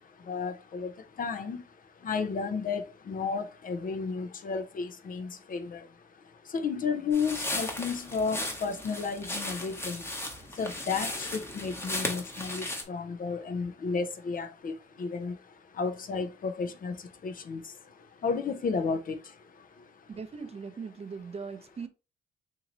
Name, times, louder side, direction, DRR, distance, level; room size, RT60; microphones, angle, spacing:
voice 1, 0.3-0.9 1.2-1.6 2.0-5.8 6.5-10.0 10.6-14.7 15.0-15.3 15.8-16.9 17.2-17.6 18.2-19.2, left 5 dB, 45° left, 0.6 m, -32 dB
sound 1, 7.1-12.8, left 1 dB, 10° left, 1.0 m, -36 dB
voice 2, 20.1-21.9, right 5 dB, 30° right, 0.6 m, -40 dB
3.0 x 2.8 x 3.8 m
cardioid pair, 90°, 20 cm